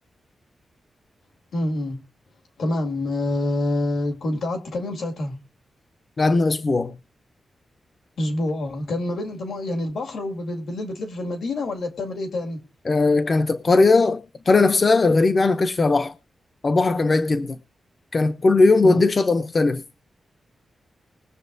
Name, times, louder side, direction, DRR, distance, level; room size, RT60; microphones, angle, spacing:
voice 1, 1.5-2.0 2.6-5.4 8.2-12.6 18.8-19.0, left 1 dB, 80° left, 2.1 m, -27 dB
voice 2, 6.2-7.0 12.8-16.1 16.6-17.6 18.1-19.8, left 3 dB, 30° left, 0.5 m, -18 dB
21.0 x 7.1 x 2.6 m
wide cardioid pair, 180°, 0 cm